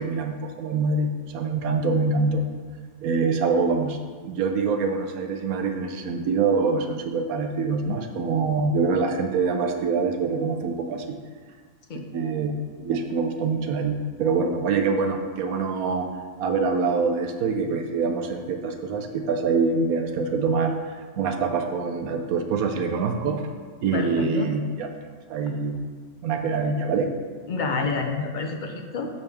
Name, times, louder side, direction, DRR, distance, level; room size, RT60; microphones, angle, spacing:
voice 1, 0.0-2.4 3.0-11.1 11.9-16.1 16.4-23.4 23.8-24.9 25.3-25.8 26.2-27.1, right 4 dB, 85° right, 5 dB, 1.2 m, -25 dB
voice 2, 23.9-24.5 26.5-26.6 27.5-29.1, left 4 dB, 45° left, 4 dB, 0.7 m, -28 dB
8.0 x 6.9 x 3.5 m, 1.5 s
omnidirectional pair, 1.5 m